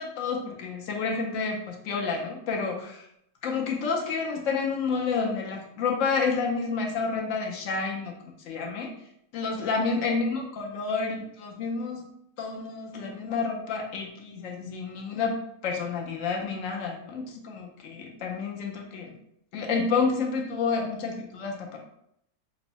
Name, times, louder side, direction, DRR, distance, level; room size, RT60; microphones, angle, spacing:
voice 1, 0.0-3.1 3.4-8.2 8.4-8.9 9.3-12.1 12.4-19.2 19.5-21.8, left 4 dB, 75° left, 0 dB, 0.7 m, -29 dB
4.3 x 2.0 x 2.8 m, 0.74 s
omnidirectional pair, 1.9 m